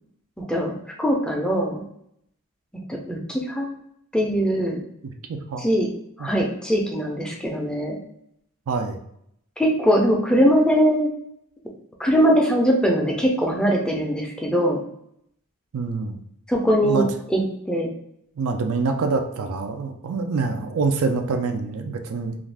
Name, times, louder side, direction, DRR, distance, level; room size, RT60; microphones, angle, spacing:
voice 1, 0.4-1.8 2.9-3.7 4.1-4.8 5.6-5.9 6.2-8.0 9.6-11.1 12.0-14.8 16.5-17.0 17.3-17.9, equal, 5° left, -1 dB, 0.4 m, -21 dB
voice 2, 5.0-5.6 6.2-6.3 8.7-9.0 15.7-16.2 16.8-17.1 18.4-22.4, right 4 dB, 65° right, 5 dB, 0.4 m, -26 dB
2.4 x 2.3 x 3.3 m, 0.74 s
head